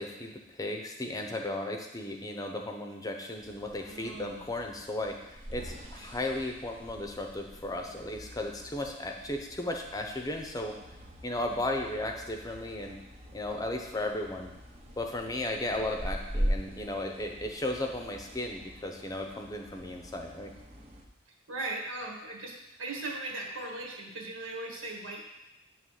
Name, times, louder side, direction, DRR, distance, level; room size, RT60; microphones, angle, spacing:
voice 1, 0.0-10.7 11.2-13.0 13.3-14.5 15.0-20.5, left 1 dB, 15° left, 3 dB, 0.7 m, -35 dB
sound 1, 3.4-21.1, equal, 30° right, 0.9 m, -41 dB
voice 2, 3.8-4.5 21.3-25.2, right 2 dB, 70° right, -1 dB, 1.5 m, -38 dB
9.1 x 3.2 x 6.4 m, 0.92 s
head